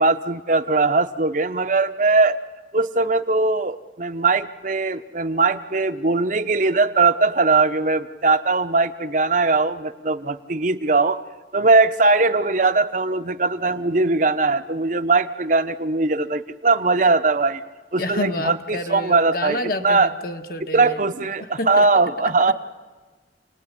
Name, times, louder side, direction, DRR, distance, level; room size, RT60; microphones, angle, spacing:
voice 1, 0.0-2.4 2.7-11.2 11.5-17.6 17.9-20.1 20.7-22.5, right 3 dB, 45° right, 9 dB, 0.9 m, -20 dB
voice 2, 18.0-21.0 21.4-21.9, left 1 dB, 55° left, 6 dB, 1.7 m, -29 dB
28.5 x 19.0 x 9.9 m, 1.3 s
head